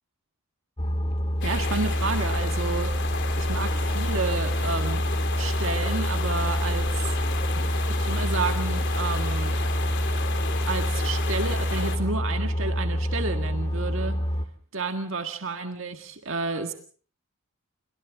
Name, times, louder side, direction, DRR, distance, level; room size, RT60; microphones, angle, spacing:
sound 1, 0.8-14.5, equal, 25° left, 1.7 m, -27 dB
sound 2, 1.4-12.0, left 4 dB, 55° left, 3.5 m, -33 dB
voice 1, 1.4-2.9 3.4-5.1 5.4-7.2 7.9-9.6 10.7-14.2 14.7-16.7, right 3 dB, 60° right, 6 dB, 1.8 m, -31 dB
28.5 x 25.5 x 3.7 m, 0.43 s
head